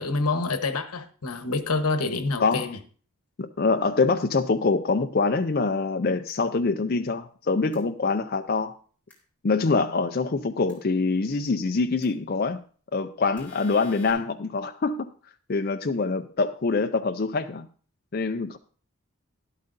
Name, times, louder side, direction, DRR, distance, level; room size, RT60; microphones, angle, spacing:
voice 1, 0.0-2.8, left 3 dB, 85° left, 1.1 m, -27 dB
voice 2, 3.4-8.7 9.4-12.6 12.9-15.1 15.5-17.7 18.1-18.6, left 4 dB, 45° left, 0.5 m, -25 dB
sound 1, 6.3-6.4 7.7-7.8 9.1-9.2 10.7-10.8 12.0-12.1 13.4-14.1, left 3 dB, 5° left, 3.1 m, -49 dB
12.5 x 11.5 x 2.6 m
head